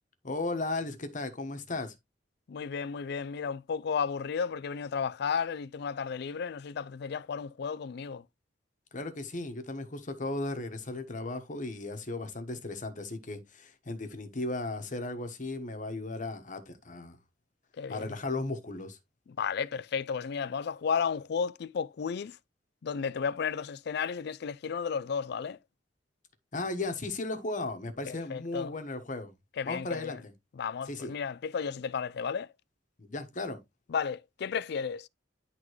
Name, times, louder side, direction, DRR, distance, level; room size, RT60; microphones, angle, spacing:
voice 1, 0.2-1.9 8.9-17.2 17.9-19.0 26.5-29.3 29.6-30.2 30.9-31.1 33.0-33.6, left 2 dB, 45° left, 1.2 m, -36 dB
voice 2, 2.5-8.2 17.7-18.2 19.3-22.4 22.8-25.6 28.1-28.7 29.6-30.2 30.6-32.5 33.9-35.1, left 6 dB, 60° left, 0.4 m, -33 dB
11.0 x 3.7 x 3.1 m
head